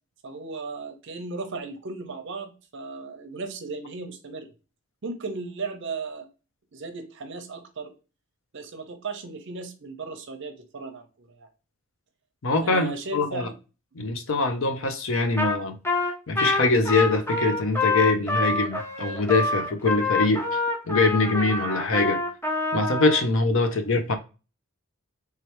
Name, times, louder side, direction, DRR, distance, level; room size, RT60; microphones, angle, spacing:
voice 1, 0.2-4.5 5.0-6.3 6.7-7.9 8.5-11.5 12.6-13.5, right 3 dB, 55° right, 0.7 m, -36 dB
voice 2, 12.4-13.5 14.0-15.8 16.3-20.4 20.9-22.2 22.7-24.1, left 3 dB, 60° left, 0.6 m, -23 dB
Trumpet, 15.4-15.6 15.8-23.2, left 3 dB, 10° left, 0.6 m, -26 dB
3.6 x 3.2 x 2.9 m
head